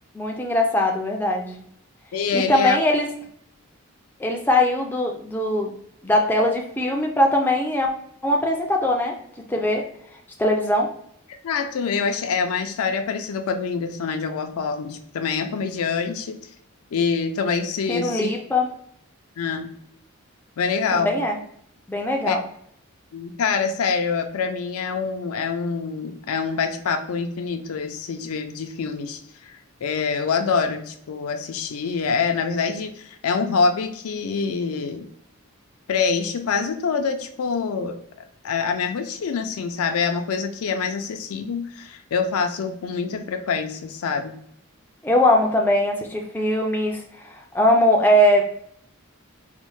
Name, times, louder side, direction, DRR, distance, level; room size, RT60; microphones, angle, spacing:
voice 1, 0.1-1.6 2.3-3.1 4.2-5.7 6.0-7.9 8.2-9.2 9.5-9.8 10.4-10.9 17.9-18.7 20.9-21.4 21.9-22.4 45.0-48.4, left 1 dB, 10° left, 1 dB, 0.3 m, -21 dB
voice 2, 2.1-2.8 11.4-16.4 16.9-18.3 19.4-19.7 20.6-21.1 22.2-22.4 23.1-29.5 29.8-35.1 35.9-44.3, left 5 dB, 80° left, 7 dB, 0.4 m, -25 dB
4.1 x 2.1 x 3.0 m, 0.69 s
head